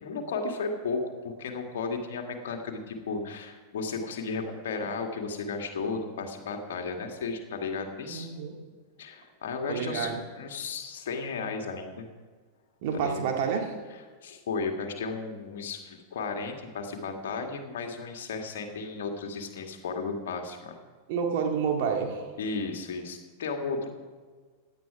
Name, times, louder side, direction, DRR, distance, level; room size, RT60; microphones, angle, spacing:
voice 1, 0.0-8.3 9.0-12.1 12.9-13.2 13.9-20.8 22.4-23.9, left 4 dB, 60° left, 4 dB, 2.0 m, -34 dB
voice 2, 8.1-8.5 9.7-10.2 12.8-13.7 21.1-22.2, right 6 dB, 50° right, 2 dB, 2.1 m, -29 dB
16.5 x 10.5 x 4.8 m, 1.5 s
figure-of-eight pair, 90°, 0 cm